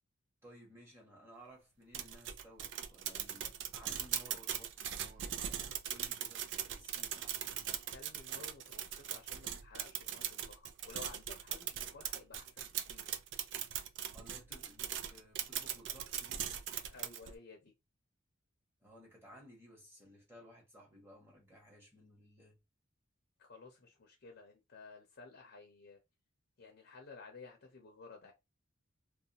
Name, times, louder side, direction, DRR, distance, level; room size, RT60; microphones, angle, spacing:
voice 1, 0.4-7.7 14.1-16.4 18.8-22.6, equal, 10° right, 1.1 m, -58 dB
sound 1, 1.9-17.4, right 9 dB, 60° right, 0.3 m, -40 dB
voice 2, 7.7-13.2 16.9-17.7 23.4-26.0 26.6-28.3, left 4 dB, 55° left, 0.6 m, -54 dB
2.4 x 2.1 x 2.8 m
head